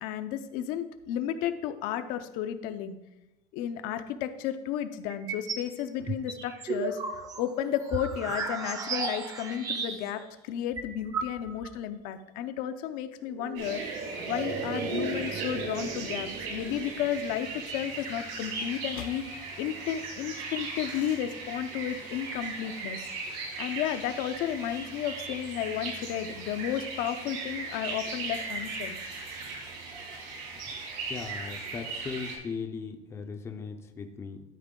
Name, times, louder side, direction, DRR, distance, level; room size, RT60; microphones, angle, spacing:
voice 1, 0.0-3.0 3.5-13.8 14.3-23.0 23.6-29.0, left 10 dB, 60° left, 9 dB, 0.6 m, -33 dB
sound 1, 5.1-5.7 6.1-10.2 10.5-10.6 10.8-11.7, right 4 dB, 20° right, 0.7 m, -34 dB
sound 2, 13.3-17.9 18.1-18.2, right 4 dB, 40° right, 1.0 m, -37 dB
sound 3, 13.6-32.4, right 3 dB, 70° right, 2.8 m, -38 dB
voice 2, 31.1-34.4, left 5 dB, 15° left, 6 dB, 0.5 m, -38 dB
12.5 x 5.2 x 3.7 m, 0.96 s
cardioid pair, 175°, 16 cm